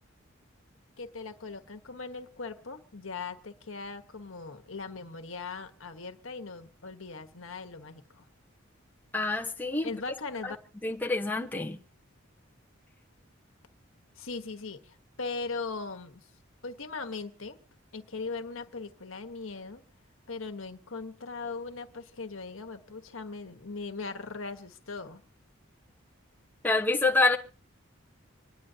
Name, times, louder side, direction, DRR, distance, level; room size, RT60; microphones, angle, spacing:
voice 1, 1.0-8.2 9.8-10.6 14.2-16.2 16.6-17.6 17.9-19.8 20.3-25.2, left 4 dB, 70° left, 1.4 m, -39 dB
voice 2, 9.1-10.0 10.4-10.5 10.8-11.8 26.6-27.4, left 3 dB, 10° left, 1.0 m, -27 dB
27.0 x 10.0 x 2.8 m
head